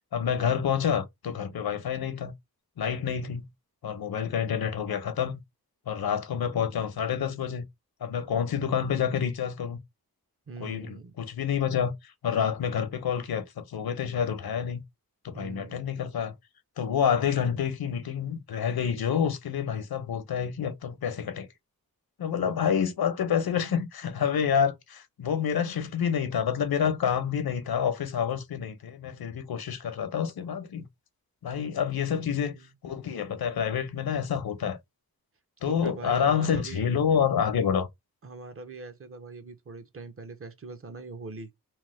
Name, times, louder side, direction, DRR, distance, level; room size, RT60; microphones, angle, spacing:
voice 1, 0.1-2.3 2.8-3.4 3.8-5.4 5.9-7.6 8.0-9.8 10.6-11.9 12.2-14.8 15.2-16.3 16.8-21.5 22.2-30.8 31.4-32.5 32.8-34.8 35.6-37.9, left 7 dB, 80° left, 0.7 m, -28 dB
voice 2, 10.5-11.2 15.3-15.8 22.4-22.5 32.1-32.7 35.6-36.9 38.2-41.5, right 3 dB, 40° right, 0.6 m, -42 dB
3.1 x 2.1 x 3.1 m
wide cardioid pair, 120°, 36 cm